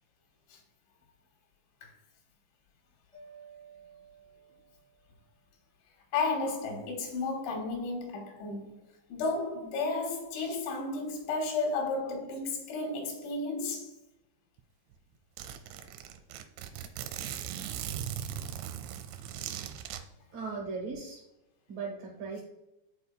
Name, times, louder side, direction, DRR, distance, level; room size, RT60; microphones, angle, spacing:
Mallet percussion, 3.1-5.2, right 5 dB, 30° left, 0.7 m, -54 dB
voice 1, 6.1-8.7 9.1-13.9 15.8-15.9, left 3 dB, 90° left, 3.7 m, -33 dB
Zipper (clothing), 14.6-14.7 14.9-15.0 15.4-20.0, right 10 dB, 90° right, 2.9 m, -39 dB
voice 2, 20.3-21.2 21.7-22.4, right 4 dB, 70° right, 2.2 m, -37 dB
11.5 x 4.0 x 2.3 m
omnidirectional pair, 5.2 m